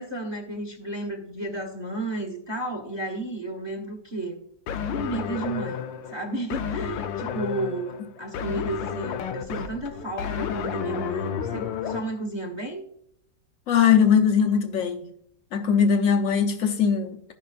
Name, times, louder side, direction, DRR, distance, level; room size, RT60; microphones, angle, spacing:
voice 1, 0.0-4.3 4.9-12.8, right 2 dB, 15° right, 1.1 m, -32 dB
sound 1, 4.7-12.0, left 8 dB, 90° left, 1.4 m, -31 dB
voice 2, 13.7-15.1 15.5-17.3, left 7 dB, 55° left, 1.0 m, -20 dB
15.0 x 5.5 x 2.4 m
omnidirectional pair, 1.9 m